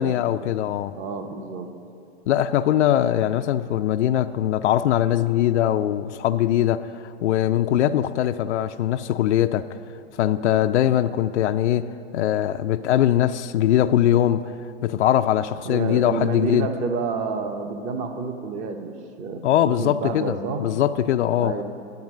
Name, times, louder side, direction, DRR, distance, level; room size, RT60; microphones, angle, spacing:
voice 1, 0.0-1.0 2.3-9.7 10.2-14.5 14.8-16.7 19.4-21.5, left 11 dB, 90° left, 0.5 m, -21 dB
voice 2, 0.9-1.7 15.6-20.6 21.4-21.6, right 4 dB, 20° right, 0.7 m, -29 dB
10.5 x 7.4 x 6.1 m
hypercardioid pair, 150°, 33 cm